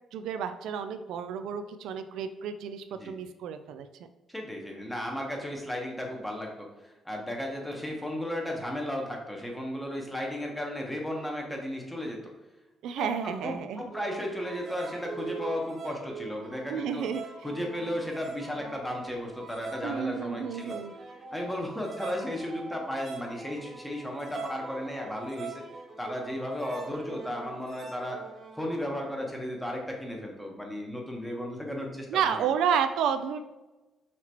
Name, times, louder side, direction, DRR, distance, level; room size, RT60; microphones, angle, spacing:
voice 1, 0.1-3.9 12.8-13.8 16.7-17.2 19.8-20.9 32.1-33.4, right 7 dB, 85° right, 9 dB, 0.3 m, -31 dB
voice 2, 4.3-12.3 13.0-17.0 17.4-20.8 21.3-25.6 26.0-28.2 28.6-32.5, left 1 dB, 5° left, 0 dB, 1.2 m, -35 dB
sound 1, 13.9-29.3, right 4 dB, 50° right, 0.8 m, -43 dB
5.8 x 2.9 x 3.0 m, 1.1 s
cardioid pair, 90°, 0 cm